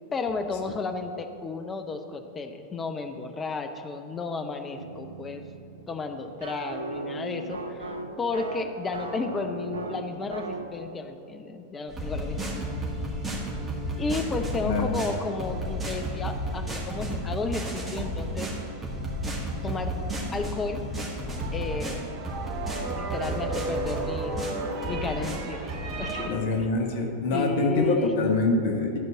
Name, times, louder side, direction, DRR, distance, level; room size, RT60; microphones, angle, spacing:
voice 1, 0.1-5.4 5.9-12.6 14.0-18.5 19.6-19.9 20.3-20.8 21.5-22.1 23.0-24.4 24.9-25.7 26.0-26.5 27.3-28.1, left 4 dB, 20° left, 7 dB, 0.6 m, -33 dB
sound 1, 4.8-10.8, right 2 dB, 75° right, 0.6 m, -37 dB
sound 2, 11.9-26.1, right 1 dB, 15° right, 2.0 m, -33 dB
sound 3, 21.3-26.3, right 3 dB, 45° right, 1.1 m, -34 dB
voice 2, 26.3-29.0, left 3 dB, 50° left, 3 dB, 1.1 m, -25 dB
11.5 x 4.6 x 7.2 m, 2.7 s
figure-of-eight pair, 90°, 0 cm